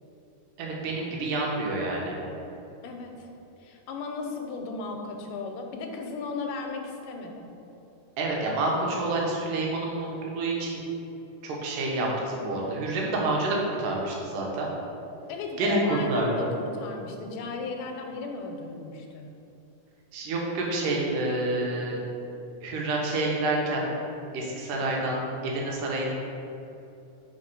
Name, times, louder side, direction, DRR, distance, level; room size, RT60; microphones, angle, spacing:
voice 1, 0.6-2.2 8.2-10.9 11.4-14.7 15.6-16.5 20.1-22.0 22.6-23.9 24.3-26.1, right 2 dB, 85° right, -2 dB, 2.5 m, -28 dB
voice 2, 2.8-3.3 3.6-7.4 15.3-19.3, left 3 dB, 90° left, 3 dB, 2.2 m, -35 dB
4.6 x 4.3 x 5.3 m, 2.8 s
omnidirectional pair, 3.7 m